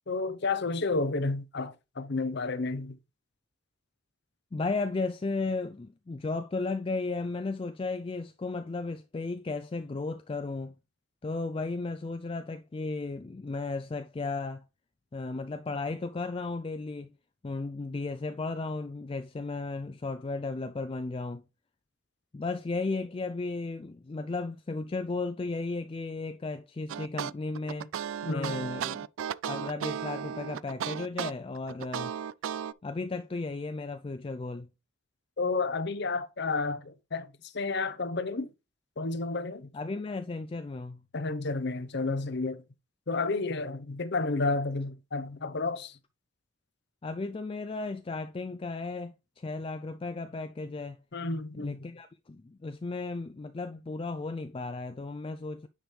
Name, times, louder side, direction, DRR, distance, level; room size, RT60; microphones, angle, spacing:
voice 1, 0.1-3.0 28.2-28.7 35.4-38.5 39.0-39.7 41.1-42.6 43.1-46.0 51.1-51.9, left 3 dB, 55° left, 0.7 m, -31 dB
voice 2, 4.5-10.8 11.2-14.7 15.1-17.1 17.4-21.4 22.3-27.9 28.3-29.1 29.5-32.1 32.8-34.7 39.7-41.0 47.0-51.0 51.6-55.7, left 3 dB, 25° left, 0.3 m, -34 dB
sound 1, 26.9-32.7, right 9 dB, 70° right, 0.3 m, -35 dB
8.9 x 5.0 x 3.2 m
head